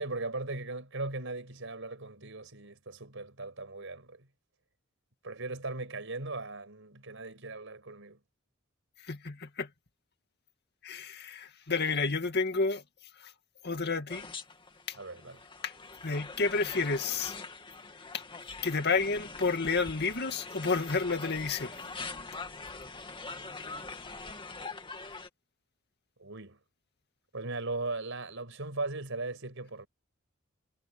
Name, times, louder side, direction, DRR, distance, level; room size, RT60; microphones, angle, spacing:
voice 1, 0.0-4.3 5.2-8.2 15.0-15.4 26.2-26.6 27.3-29.9, right 2 dB, 70° right, 5.9 m, -38 dB
voice 2, 9.1-9.7 10.8-12.8 13.2-13.3 13.6-14.3 15.6-15.7 16.0-17.4 18.1-18.2 18.6-21.7, left 4 dB, 55° left, 2.2 m, -30 dB
sound 1, 14.1-25.3, left 3 dB, 25° left, 2.4 m, -43 dB
head